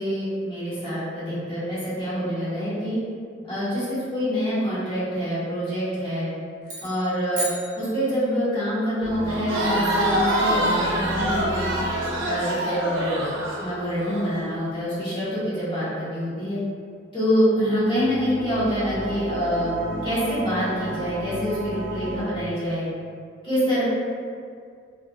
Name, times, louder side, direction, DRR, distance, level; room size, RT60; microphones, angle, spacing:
voice 1, 0.0-3.0 3.4-6.3 6.8-7.5 7.8-11.7 12.2-13.3 13.6-16.6 17.1-22.9 23.4-23.8, equal, 25° left, -12 dB, 1.3 m, -26 dB
sound 1, 6.6-8.6, right 1 dB, 45° right, 0.8 m, -34 dB
sound 2, 9.0-15.0 17.8-22.2, right 1 dB, 15° right, 1.5 m, -34 dB
Crowd, 9.3-14.2, right 1 dB, 90° right, 0.6 m, -25 dB
3.3 x 2.6 x 2.4 m, 2.2 s
head